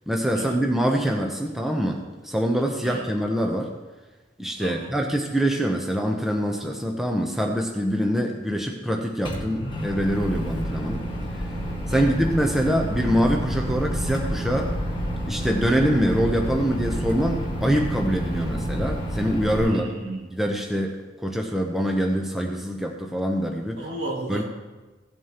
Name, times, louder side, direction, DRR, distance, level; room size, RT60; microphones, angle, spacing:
voice 1, 0.1-3.7 4.4-11.0 11.9-14.7 15.3-19.9 20.3-20.9 21.2-23.8 24.3-24.4, equal, ahead, 1 dB, 0.7 m, -24 dB
voice 2, 2.8-3.2 4.6-4.9 11.9-12.3 19.6-20.3 23.8-24.4, right 1 dB, 70° right, -4 dB, 2.8 m, -34 dB
Microwave oven, 9.3-19.6, equal, 25° left, 1.7 m, -29 dB
16.5 x 8.0 x 2.9 m, 1.2 s
head